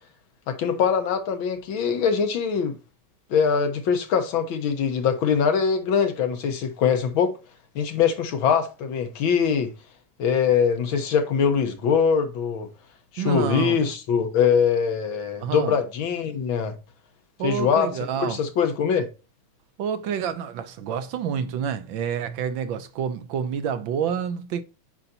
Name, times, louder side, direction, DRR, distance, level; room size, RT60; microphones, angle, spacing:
voice 1, 0.5-2.8 3.3-7.3 7.8-9.7 10.2-12.7 13.1-16.8 17.4-17.9 18.2-19.1, left 6 dB, 75° left, 1.9 m, -22 dB
voice 2, 13.2-13.8 15.4-15.8 17.4-18.4 19.8-24.6, right 7 dB, 70° right, 1.4 m, -28 dB
8.2 x 5.7 x 2.7 m
omnidirectional pair, 2.3 m